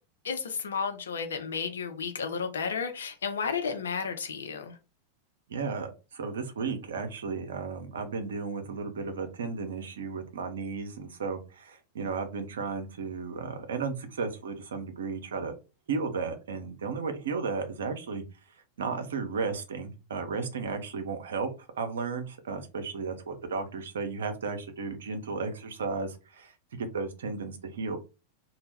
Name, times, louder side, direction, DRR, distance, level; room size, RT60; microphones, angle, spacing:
voice 1, 0.2-4.8, left 6 dB, 75° left, 0.5 m, -32 dB
voice 2, 5.5-15.6 15.9-18.2 18.8-21.5 21.8-28.0, right 4 dB, 70° right, 0.5 m, -34 dB
2.2 x 2.0 x 3.3 m
figure-of-eight pair, 90°, 0 cm